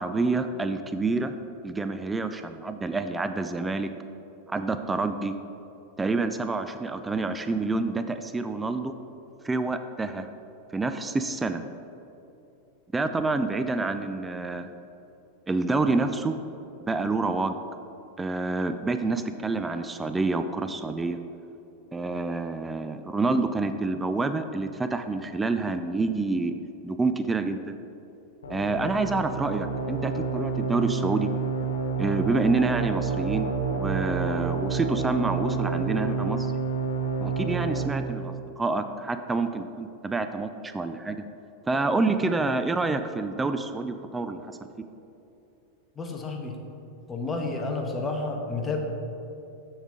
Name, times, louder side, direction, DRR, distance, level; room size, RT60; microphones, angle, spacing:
voice 1, 0.0-1.3 1.6-3.9 4.5-5.3 6.0-8.9 9.4-10.3 10.7-11.6 12.9-14.7 15.5-16.4 16.8-17.6 18.2-21.2 21.9-26.5 26.8-27.6 28.5-31.3 32.0-36.5 37.2-41.2 41.7-44.4, right 3 dB, 15° right, 9 dB, 0.4 m, -27 dB
sound 1, 28.4-37.8, right 4 dB, 90° left, 1.0 m, -29 dB
voice 2, 46.0-46.5 47.1-48.8, left 3 dB, 20° left, 2 dB, 1.2 m, -30 dB
7.1 x 7.1 x 3.7 m, 2.9 s
hypercardioid pair, 105°, 0 cm